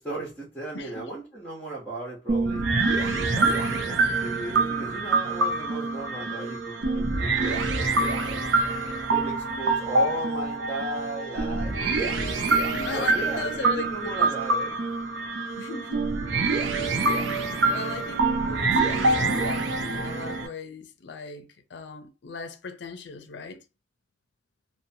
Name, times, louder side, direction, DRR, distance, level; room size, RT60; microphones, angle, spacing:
voice 1, 0.0-2.7 3.1-8.4 8.8-12.1 12.9-14.8, right 2 dB, 10° left, 0.8 m, -36 dB
voice 2, 0.7-1.1 12.7-14.3 15.6-16.0 17.7-23.6, left 4 dB, 60° left, 0.5 m, -37 dB
sound 1, 2.3-20.5, right 3 dB, 70° right, 0.5 m, -25 dB
2.8 x 2.1 x 2.6 m
head